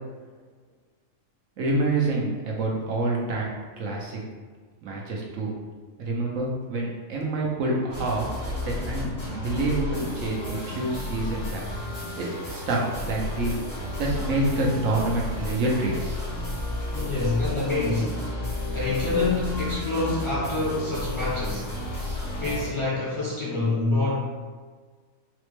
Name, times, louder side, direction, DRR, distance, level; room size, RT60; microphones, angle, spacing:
voice 1, 1.6-4.2 4.8-5.5 6.0-11.7 12.2-12.8 13.1-16.0, right 2 dB, 80° right, -2 dB, 1.1 m, -27 dB
sound 1, 7.9-22.7, left 1 dB, 80° left, 1.9 m, -32 dB
voice 2, 16.9-18.3 18.7-21.7 22.4-24.2, left 3 dB, 30° left, -8 dB, 0.6 m, -26 dB
4.0 x 2.1 x 3.1 m, 1.5 s
omnidirectional pair, 1.3 m